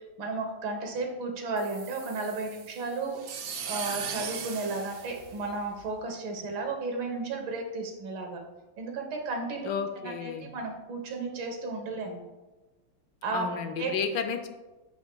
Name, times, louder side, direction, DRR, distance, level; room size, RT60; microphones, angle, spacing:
voice 1, 0.2-3.2 3.7-8.4 8.8-9.7 10.0-12.2 13.2-13.5 13.8-13.9, right 3 dB, 85° right, 3 dB, 1.9 m, -33 dB
sound 1, 1.6-5.9, right 7 dB, 65° right, 0.8 m, -39 dB
voice 2, 9.6-10.5 13.3-14.5, left 6 dB, 75° left, 8 dB, 1.2 m, -32 dB
8.8 x 7.1 x 2.2 m, 1.1 s
omnidirectional pair, 2.1 m